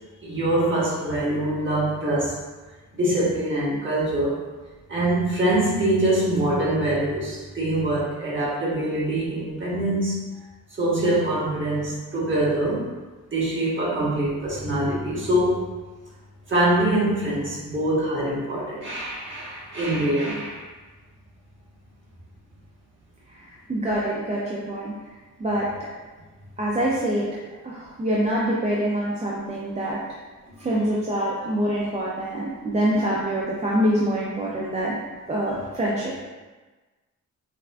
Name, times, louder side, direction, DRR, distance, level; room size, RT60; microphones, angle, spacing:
voice 1, 0.2-2.4 2.9-4.4 4.9-10.2 10.8-12.9 13.3-15.7 16.5-20.7 30.6-30.7, right 1 dB, 35° right, -8 dB, 1.3 m, -24 dB
voice 2, 23.3-24.9 25.4-25.7 26.6-27.3 27.6-30.0 30.6-35.0 35.3-36.2, right 1 dB, 20° right, -6 dB, 0.4 m, -25 dB
5.8 x 2.5 x 2.2 m, 1.3 s
wide cardioid pair, 170°, 32 cm